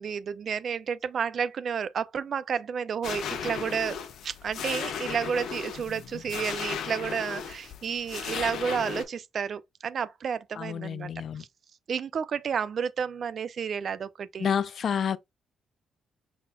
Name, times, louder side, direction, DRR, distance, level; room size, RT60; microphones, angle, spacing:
voice 1, 0.0-11.1 11.9-14.5, right 7 dB, 55° right, 0.5 m, -31 dB
sound 1, 3.0-9.0, left 7 dB, 70° left, 1.0 m, -36 dB
voice 2, 10.6-11.4 14.4-15.2, left 7 dB, 55° left, 0.4 m, -29 dB
5.6 x 4.2 x 2.3 m
cardioid pair, 90°, 0 cm